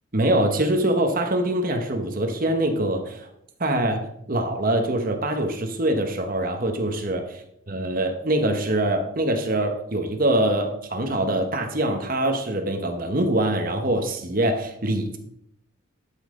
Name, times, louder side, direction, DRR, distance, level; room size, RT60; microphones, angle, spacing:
voice 1, 0.1-3.3 3.6-4.0 4.3-7.4 7.7-15.2, right 1 dB, 40° right, 4 dB, 1.1 m, -24 dB
12.0 x 7.2 x 3.8 m, 0.73 s
head